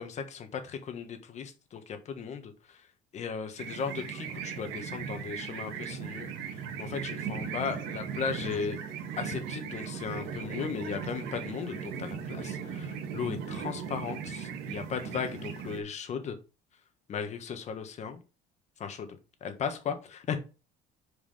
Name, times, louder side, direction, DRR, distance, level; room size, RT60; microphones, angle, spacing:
voice 1, 0.0-2.5 3.1-6.3 6.8-8.8 9.2-16.3 17.1-18.2 18.8-19.1 19.4-20.4, left 6 dB, 40° left, 7 dB, 1.5 m, -36 dB
sound 1, 3.6-15.8, right 7 dB, 70° right, 1.8 m, -38 dB
5.5 x 5.0 x 5.0 m, 0.31 s
cardioid pair, 135°, 18 cm